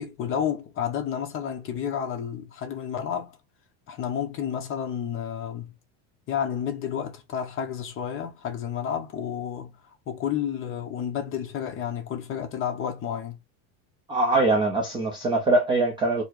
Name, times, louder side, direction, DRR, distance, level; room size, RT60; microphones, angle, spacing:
voice 1, 0.0-3.4 3.9-5.7 6.3-9.7 10.1-13.4, left 8 dB, 30° left, 0.8 m, -31 dB
voice 2, 14.1-16.2, right 2 dB, 10° right, 0.3 m, -22 dB
4.2 x 2.1 x 4.5 m
cardioid pair, 165°, 44 cm